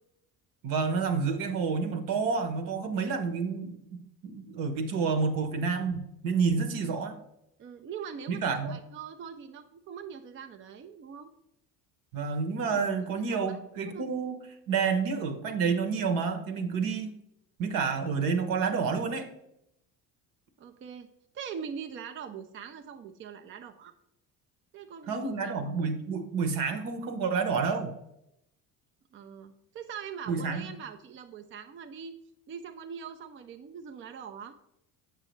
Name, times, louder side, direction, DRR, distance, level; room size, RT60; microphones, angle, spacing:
voice 1, 0.6-3.7 4.2-7.1 8.3-8.8 12.1-14.4 14.7-17.1 17.6-19.3 25.1-27.9 30.3-30.7, right 5 dB, 70° right, 7 dB, 1.1 m, -29 dB
voice 2, 7.6-11.3 12.7-12.8 13.3-13.6 13.9-14.1 20.6-21.1 21.3-23.9 24.7-25.7 29.1-32.2 32.5-34.6, right 7 dB, 35° right, 7 dB, 0.5 m, -42 dB
7.4 x 6.5 x 3.1 m, 0.81 s
cardioid pair, 115°, 35 cm